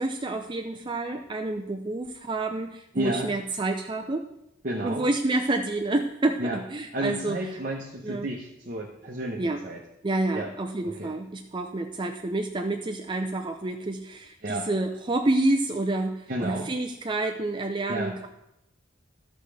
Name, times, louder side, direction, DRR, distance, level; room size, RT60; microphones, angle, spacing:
voice 1, 0.0-4.2 4.8-7.4 8.0-8.3 9.4-9.6 10.0-18.3, right 2 dB, 25° right, 4 dB, 0.5 m, -28 dB
voice 2, 2.9-3.3 4.6-5.1 6.4-6.6 6.9-9.8 10.3-10.5 10.8-11.1 14.4-14.7 16.3-16.7 17.9-18.1, right 1 dB, 45° right, -1 dB, 1.1 m, -31 dB
14.0 x 6.2 x 3.4 m, 0.84 s
head